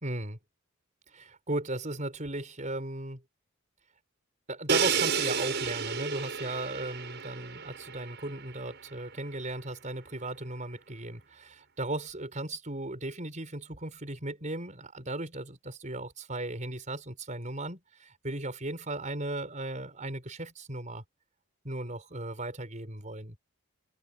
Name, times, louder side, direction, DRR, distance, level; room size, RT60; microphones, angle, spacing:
voice 1, 0.0-0.4 1.1-3.2 4.5-21.0 21.6-23.4, right 2 dB, 35° right, 4.9 m, -36 dB
Crash cymbal, 4.7-8.5, right 6 dB, 55° right, 7.8 m, -31 dB
head